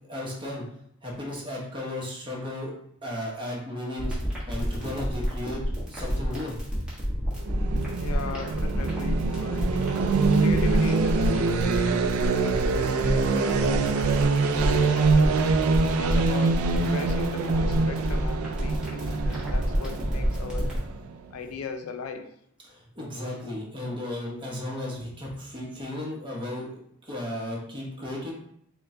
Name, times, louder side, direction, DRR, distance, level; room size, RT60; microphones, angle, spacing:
voice 1, 0.1-0.6 1.0-2.7 3.0-4.2 4.5-5.6 5.9-6.6 22.7-26.8 27.1-28.3, left 1 dB, 25° right, -3 dB, 1.0 m, -34 dB
sound 1, 4.0-20.8, equal, 5° right, 1.2 m, -29 dB
sound 2, 7.4-21.3, right 4 dB, 85° right, 0.4 m, -25 dB
voice 2, 8.0-9.9 10.4-15.3 16.0-20.7 21.3-22.3, left 4 dB, 80° left, 7 dB, 0.4 m, -38 dB
4.5 x 2.2 x 3.7 m, 0.69 s
head